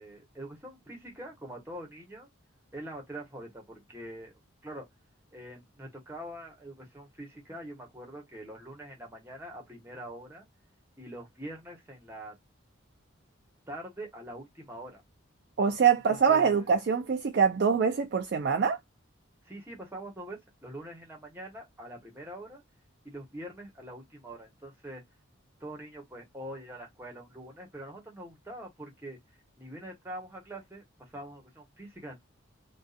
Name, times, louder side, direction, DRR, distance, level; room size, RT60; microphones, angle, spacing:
voice 1, 0.0-2.3 2.7-4.3 4.6-4.9 5.3-10.4 11.0-12.4 13.7-15.0 16.1-16.7 19.4-22.6 23.0-25.0 25.6-29.2 29.6-32.2, right 1 dB, 10° right, 0.9 m, -44 dB
voice 2, 15.6-18.8, right 6 dB, 50° right, 0.3 m, -24 dB
2.6 x 2.3 x 2.3 m
head